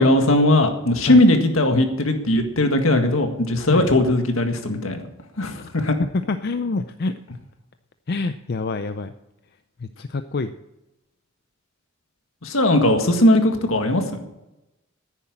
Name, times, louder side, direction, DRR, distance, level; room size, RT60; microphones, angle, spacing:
voice 1, 0.0-5.0 5.4-6.0 12.4-14.0, left 1 dB, 75° left, 5 dB, 1.9 m, -18 dB
voice 2, 6.0-7.1 8.1-9.1 9.8-10.5, left 3 dB, 50° left, 10 dB, 0.5 m, -26 dB
10.0 x 9.9 x 8.8 m, 0.96 s
head